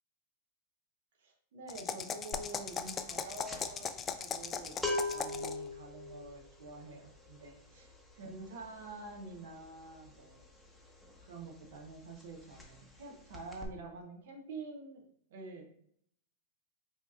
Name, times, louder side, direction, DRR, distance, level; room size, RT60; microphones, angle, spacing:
voice 1, 1.2-4.8 5.1-10.4 11.3-15.0 15.3-15.7, right 3 dB, 70° right, 2 dB, 0.7 m, -47 dB
sound 1, 1.7-5.7, left 6 dB, 25° left, 0.3 m, -39 dB
sound 2, 2.3-2.6 2.8-11.4 11.7-11.9 12.2-13.0 13.3-13.7, left 2 dB, 5° left, 0.7 m, -41 dB
4.4 x 2.8 x 2.4 m, 0.66 s
hypercardioid pair, 105°, 0 cm